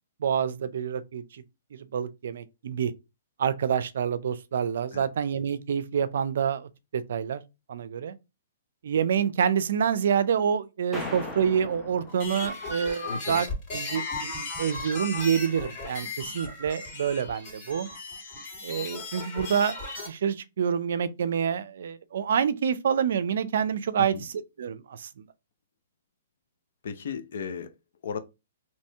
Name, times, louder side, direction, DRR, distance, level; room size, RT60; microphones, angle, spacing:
voice 1, 0.2-1.4 1.7-2.9 3.4-7.4 7.7-8.2 8.8-17.9 18.6-19.8 20.1-24.3 24.6-25.2, right 7 dB, 70° right, 0.4 m, -27 dB
sound 1, 10.9-12.9, left 2 dB, 5° left, 0.7 m, -39 dB
sound 2, 12.1-20.1, left 3 dB, 30° left, 2.1 m, -36 dB
voice 2, 13.1-13.4 24.0-24.2 26.8-27.7 28.0-28.2, left 6 dB, 65° left, 0.6 m, -35 dB
3.0 x 2.7 x 3.3 m
hypercardioid pair, 145°, 0 cm